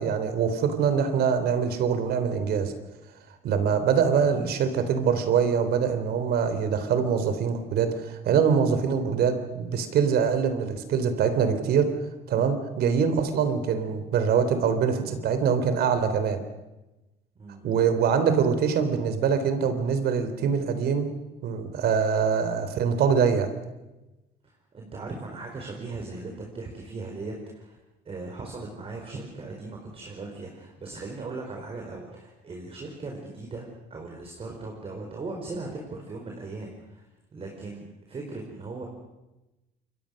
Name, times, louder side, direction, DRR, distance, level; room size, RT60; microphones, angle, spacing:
voice 1, 0.0-2.7 3.4-11.9 12.3-16.4 17.6-21.1 21.4-23.5, right 6 dB, 70° right, 10 dB, 3.5 m, -24 dB
voice 2, 17.4-17.7 24.4-27.8 28.0-37.0 37.3-38.9, right 3 dB, 35° right, 1 dB, 4.8 m, -38 dB
28.5 x 23.5 x 6.5 m, 1.0 s
cardioid pair, 110°, 17 cm